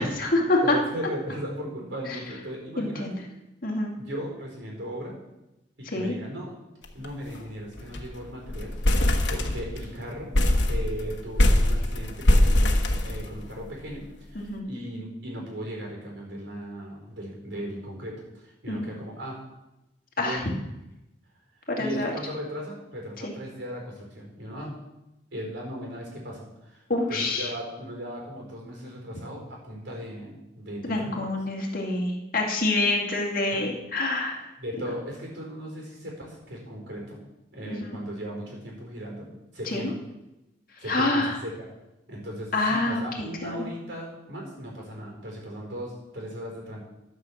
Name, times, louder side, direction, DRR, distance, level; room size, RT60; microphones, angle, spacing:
voice 1, 0.0-0.8 2.1-2.2 2.8-3.2 3.6-3.9 5.9-6.1 14.4-14.6 18.7-18.9 20.2-20.4 21.7-22.1 23.2-23.3 26.9-27.5 30.9-34.5 37.7-37.9 39.7-39.9 40.9-41.4 42.5-43.7, left 2 dB, 50° left, -1 dB, 2.3 m, -26 dB
voice 2, 0.6-3.2 3.9-5.2 5.8-6.5 6.9-8.7 9.3-10.3 10.6-19.4 20.2-20.5 21.8-24.7 25.3-31.3 33.5-33.6 34.6-37.2 37.5-40.0 40.8-41.7 42.1-46.8, equal, 75° right, -1 dB, 4.5 m, -37 dB
sound 1, 6.8-7.1 7.3-7.4 7.8-8.1 8.5-9.9 10.3-13.6, left 1 dB, 75° left, 1.3 m, -22 dB
12.5 x 6.4 x 7.1 m, 0.95 s
head